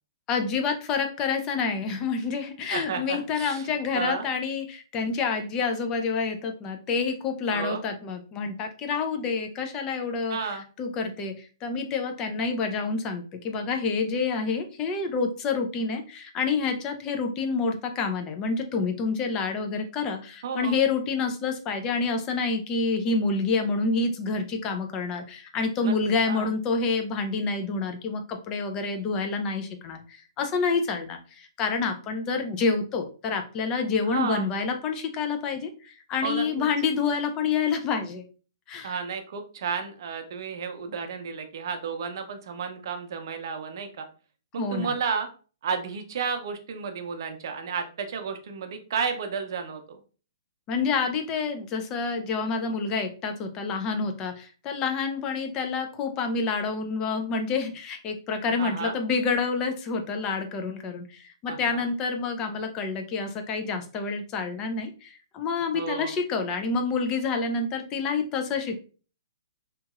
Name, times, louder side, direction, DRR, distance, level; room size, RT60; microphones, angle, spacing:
voice 1, 0.3-38.2 38.7-39.0 44.6-44.9 50.7-68.8, left 4 dB, 20° left, 5 dB, 0.4 m, -28 dB
voice 2, 2.7-3.7 3.9-4.3 7.5-7.8 10.3-10.6 20.4-20.8 25.8-26.5 34.0-34.5 36.2-36.7 38.8-44.0 44.5-45.3 45.6-50.0 58.6-59.0 61.5-61.8 65.7-66.1, right 6 dB, 55° right, 6 dB, 0.6 m, -32 dB
2.9 x 2.8 x 2.3 m, 0.37 s
hypercardioid pair, 160°, 3 cm